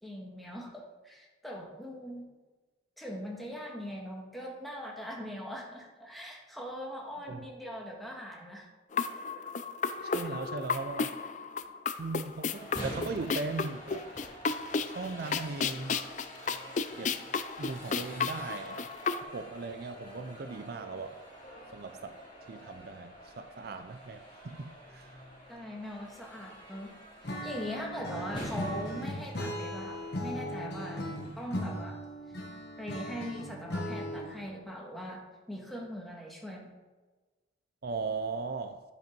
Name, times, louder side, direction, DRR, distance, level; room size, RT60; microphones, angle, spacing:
voice 1, 0.0-2.3 3.0-8.7 10.1-10.3 25.5-26.9 27.4-31.1 31.4-32.0 32.8-36.8, equal, ahead, -1 dB, 1.5 m, -41 dB
sound 1, 8.9-19.2, left 5 dB, 40° left, 0.4 m, -33 dB
voice 2, 10.0-11.1 12.0-14.1 14.8-16.0 16.9-17.2 17.6-18.8 19.3-21.2 21.7-22.2 22.5-25.1 28.1-28.3 37.8-38.8, right 3 dB, 55° right, 9 dB, 0.4 m, -38 dB
sound 2, 12.5-31.7, equal, 25° left, 2.4 m, -47 dB
Acoustic guitar / Strum, 27.2-34.4, equal, 60° left, 1.5 m, -38 dB
10.5 x 5.3 x 5.2 m, 1.3 s
head